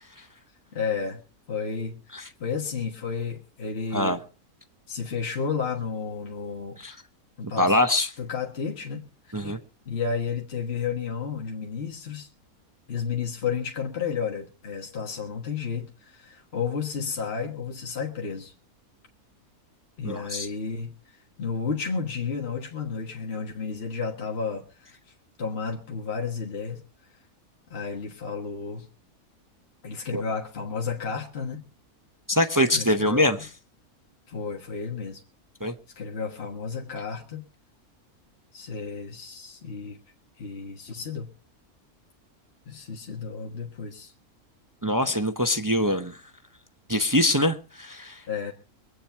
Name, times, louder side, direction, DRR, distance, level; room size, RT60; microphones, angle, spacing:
voice 1, 0.7-1.2 1.5-4.2 4.9-6.8 7.4-7.8 8.2-9.6 9.9-12.3 12.9-18.5 20.0-25.0 25.4-26.8 27.7-28.9 29.8-31.6 32.7-33.4 34.3-35.2 36.0-37.4 38.5-40.0 40.4-41.3 42.7-44.1 48.3-48.5, left 5 dB, 45° left, 1.7 m, -32 dB
voice 2, 7.6-8.1 9.3-9.6 20.0-20.5 30.1-30.2 32.3-33.4 35.6-35.7 44.8-46.2 46.9-48.2, left 1 dB, 20° right, 0.6 m, -23 dB
23.0 x 8.9 x 4.5 m
omnidirectional pair, 1.6 m